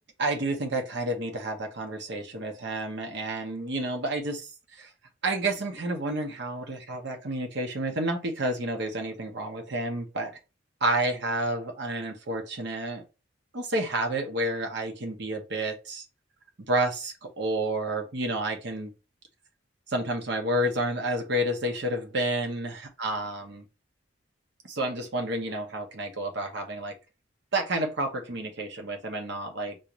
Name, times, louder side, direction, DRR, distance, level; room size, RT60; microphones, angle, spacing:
voice 1, 0.2-4.9 5.2-10.3 10.8-13.0 13.5-16.0 16.7-18.9 19.9-23.6 24.6-26.9 27.5-29.8, right 1 dB, 65° right, 4 dB, 0.9 m, -30 dB
4.0 x 2.5 x 3.0 m, 0.30 s
head